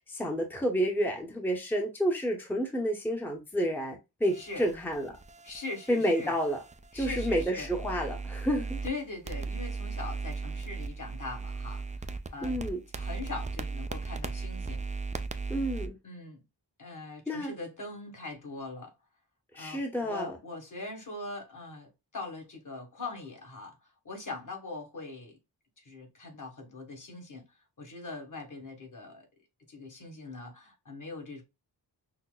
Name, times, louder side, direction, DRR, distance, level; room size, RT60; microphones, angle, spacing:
voice 1, 0.1-5.2 5.9-6.6 6.9-8.8 12.4-12.8 15.5-15.9 17.3-17.5 19.5-20.4, equal, 5° left, 0.8 m, -30 dB
sound 1, 4.2-8.9 9.3-15.9, right 4 dB, 20° right, 0.3 m, -37 dB
voice 2, 5.4-6.3 6.9-7.7 8.8-12.6 12.9-14.9 16.0-16.4 16.8-18.9 19.6-23.8 24.0-25.4 25.8-27.5 27.8-29.3 29.7-31.4, left 3 dB, 45° left, 1.5 m, -41 dB
5.8 x 2.0 x 2.2 m
wide cardioid pair, 75°, 42 cm